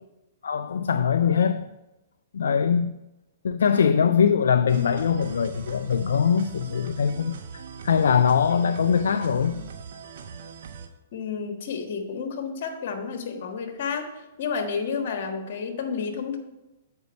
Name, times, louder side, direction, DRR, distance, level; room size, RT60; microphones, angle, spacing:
voice 1, 0.4-1.7 2.3-3.0 3.4-9.7, left 7 dB, 75° left, 0.3 m, -22 dB
sound 1, 4.7-10.9, right 6 dB, 60° right, 1.0 m, -41 dB
voice 2, 11.1-16.4, left 5 dB, 60° left, 1.4 m, -31 dB
8.0 x 5.3 x 5.2 m
hypercardioid pair, 125°, 0 cm